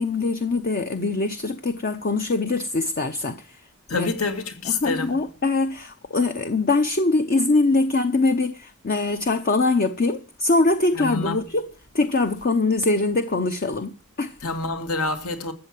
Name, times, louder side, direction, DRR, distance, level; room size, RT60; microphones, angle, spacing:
voice 1, 0.0-3.6 3.9-4.1 4.7-11.6 11.9-14.4, left 3 dB, 40° left, 0.8 m, -23 dB
voice 2, 3.9-5.2 11.0-11.5 14.4-15.5, left 3 dB, 75° left, 2.2 m, -27 dB
14.0 x 7.5 x 7.6 m
head